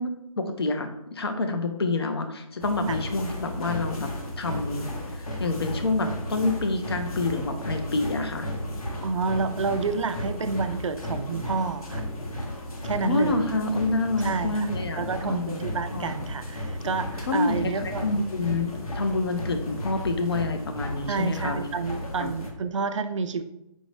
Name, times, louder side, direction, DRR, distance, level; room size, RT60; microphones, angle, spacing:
voice 1, 0.0-4.1 4.4-8.5 13.0-16.1 17.3-21.7 22.2-22.3, left 2 dB, 45° left, 6 dB, 0.5 m, -28 dB
sound 1, 2.6-22.5, left 1 dB, 80° left, 1.1 m, -34 dB
voice 2, 9.0-12.0 12.8-13.5 14.2-14.7 15.0-18.1 21.1-23.4, right 4 dB, 55° right, 9 dB, 0.4 m, -29 dB
5.2 x 2.6 x 3.1 m, 0.87 s
hypercardioid pair, 175°, 19 cm